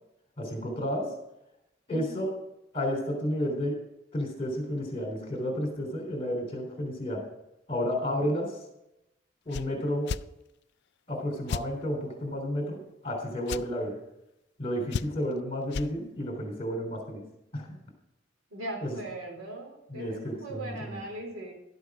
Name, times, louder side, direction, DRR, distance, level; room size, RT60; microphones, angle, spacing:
voice 1, 0.4-1.1 1.9-2.3 2.7-3.8 4.1-7.3 7.7-8.6 9.5-10.1 11.1-14.0 14.6-17.2 17.5-17.8 18.8-19.0 19.9-21.1, equal, 30° left, 2 dB, 3.4 m, -31 dB
sound 1, 9.5-9.7 10.1-10.2 11.5-11.7 13.5-13.6 14.9-15.3 15.7-15.9, left 6 dB, 55° left, 0.3 m, -32 dB
voice 2, 18.5-21.5, right 1 dB, 90° right, 0 dB, 4.1 m, -39 dB
12.0 x 8.1 x 4.9 m, 0.87 s
head